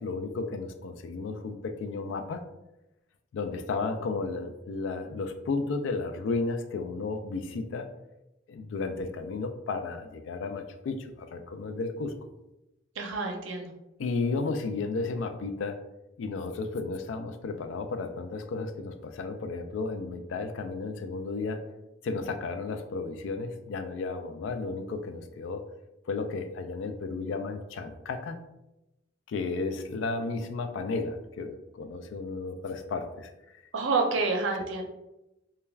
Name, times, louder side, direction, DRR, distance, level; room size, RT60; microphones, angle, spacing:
voice 1, 0.0-2.4 3.3-7.9 8.5-12.1 14.0-15.8 16.2-21.6 22.0-25.6 26.1-28.4 29.3-33.6, left 3 dB, 75° left, 8 dB, 0.3 m, -33 dB
voice 2, 13.0-13.7 33.7-34.8, right 3 dB, 85° right, 2 dB, 0.5 m, -28 dB
2.3 x 2.2 x 3.2 m, 0.94 s
head